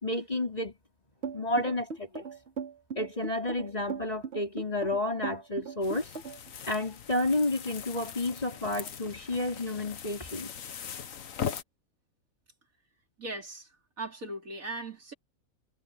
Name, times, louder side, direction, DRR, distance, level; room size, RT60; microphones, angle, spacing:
voice 1, 0.0-0.8 1.3-2.3 3.0-6.1 6.6-10.5, left 2 dB, 25° left, 4.6 m, -31 dB
sound 1, 1.2-6.5, right 5 dB, 50° right, 2.5 m, -38 dB
sound 2, 5.8-11.6, left 8 dB, 70° left, 1.5 m, -40 dB
voice 2, 13.2-13.7 14.0-15.1, right 2 dB, 70° right, 4.1 m, -38 dB
omnidirectional pair, 1.5 m